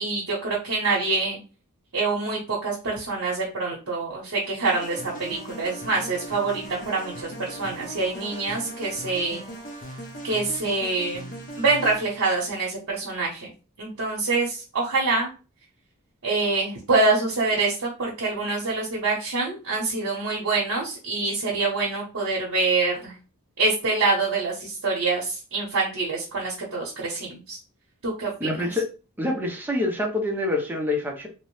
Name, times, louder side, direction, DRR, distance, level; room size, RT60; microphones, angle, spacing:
voice 1, 0.0-1.4 1.9-9.4 10.2-11.3 11.6-13.5 13.8-15.3 16.2-23.1 23.6-27.6 28.0-28.7, right 3 dB, 70° right, -3 dB, 0.8 m, -25 dB
sound 1, 4.6-12.3, right 1 dB, 40° left, 0.6 m, -39 dB
voice 2, 28.4-28.9 29.2-31.3, left 2 dB, 10° right, 1 dB, 0.6 m, -26 dB
2.9 x 2.0 x 3.0 m, 0.33 s
head